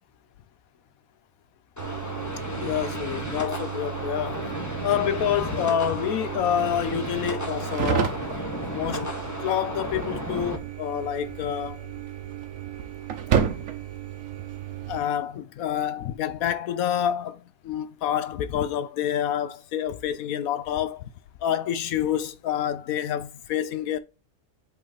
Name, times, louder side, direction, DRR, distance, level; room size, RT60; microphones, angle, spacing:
sound 1, 1.8-10.6, left 1 dB, 15° left, 0.9 m, -34 dB
sound 2, 1.8-15.0, right 9 dB, 60° right, 1.2 m, -32 dB
voice 1, 2.6-4.5 4.8-8.4 8.7-9.1 9.4-11.9 14.9-21.1 21.4-24.0, left 9 dB, 70° left, 1.0 m, -28 dB
7.8 x 3.4 x 4.0 m
omnidirectional pair, 1.7 m